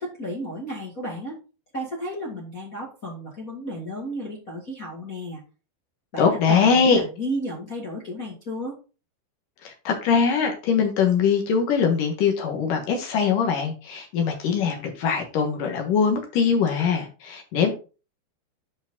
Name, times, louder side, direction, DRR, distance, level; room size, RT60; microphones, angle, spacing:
voice 1, 0.0-1.4 1.7-5.4 6.1-8.7, equal, 30° left, -3 dB, 1.6 m, -33 dB
voice 2, 6.2-7.0 9.6-17.7, left 6 dB, 60° left, 3 dB, 2.5 m, -22 dB
9.7 x 5.2 x 3.9 m, 0.34 s
omnidirectional pair, 5.1 m